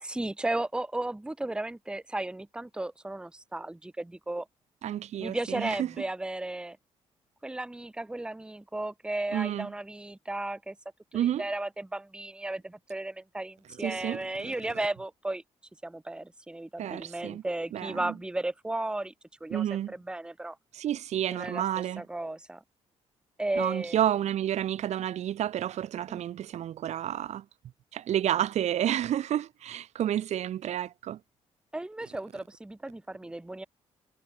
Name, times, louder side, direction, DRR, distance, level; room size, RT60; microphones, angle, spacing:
voice 1, 0.0-4.5 5.2-6.8 7.4-10.8 11.1-15.4 15.8-19.1 19.4-20.6 21.3-22.6 23.4-24.0 26.1-26.2 31.7-33.7, right 2 dB, 5° right, 0.9 m, -35 dB
voice 2, 4.8-5.9 9.3-9.7 11.1-11.4 13.8-14.5 16.8-17.4 17.7-18.1 19.5-19.9 20.7-22.0 23.6-27.4 27.9-31.2, right 11 dB, 70° right, 1.2 m, -30 dB
cardioid pair, 105°, 12 cm